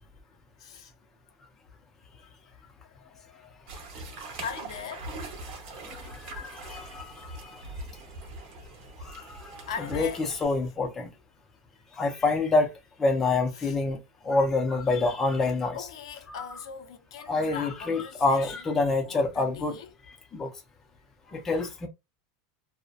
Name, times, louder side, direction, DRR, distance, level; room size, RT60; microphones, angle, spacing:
voice 1, 0.6-0.9 2.5-2.6 3.0-3.6 4.4-5.1 5.7-5.8 9.7-10.3 13.5-13.8 15.7-18.6 19.0-19.9, left 7 dB, 90° left, 0.5 m, -40 dB
sound 1, 3.7-10.5, right 2 dB, 45° right, 0.8 m, -42 dB
voice 2, 5.5-7.7 9.0-11.1 11.9-12.7 13.0-15.8 16.3-16.4 17.3-19.8 20.1-20.5 21.3-21.9, left 3 dB, 15° left, 0.4 m, -27 dB
2.6 x 2.1 x 2.4 m
supercardioid pair, 170°, 3 cm